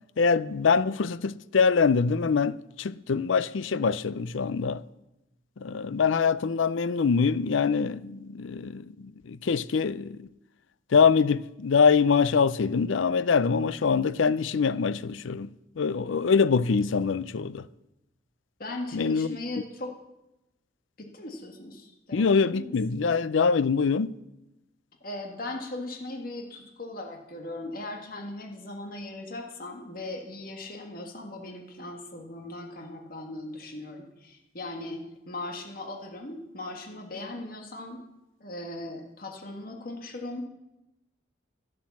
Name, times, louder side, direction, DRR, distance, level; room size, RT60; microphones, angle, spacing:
voice 1, 0.2-4.8 5.6-8.9 9.3-10.2 10.9-15.5 15.8-17.6 18.9-19.3 22.1-24.1, left 5 dB, 75° left, 0.5 m, -24 dB
voice 2, 18.6-19.9 21.0-22.7 23.0-23.1 25.0-38.0 38.4-40.5, left 2 dB, 45° left, 1.7 m, -38 dB
11.5 x 11.0 x 7.2 m
head